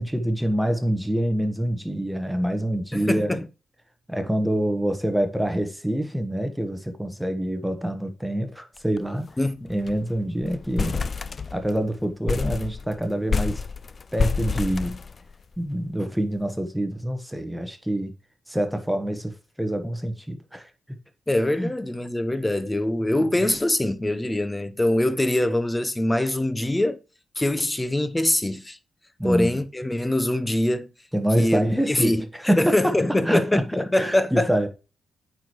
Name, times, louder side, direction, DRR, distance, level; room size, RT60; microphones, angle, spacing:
voice 1, 0.0-3.4 4.1-9.3 9.7-11.0 11.5-13.6 14.1-15.0 15.6-18.1 18.5-20.7 21.6-21.7 23.1-23.2 29.2-29.5 31.1-32.9 33.3-33.6 33.9-34.7, right 1 dB, 5° right, 1.3 m, -26 dB
voice 2, 2.9-3.5 9.4-9.7 21.3-27.0 27.4-28.8 29.2-30.9 31.4-34.5, left 1 dB, 15° left, 0.9 m, -23 dB
sound 1, 8.8-9.0 9.3-9.4 9.7-10.1 10.4-11.8 12.3-15.6, left 5 dB, 45° left, 0.5 m, -28 dB
8.9 x 4.8 x 3.1 m
supercardioid pair, 50°, 0 cm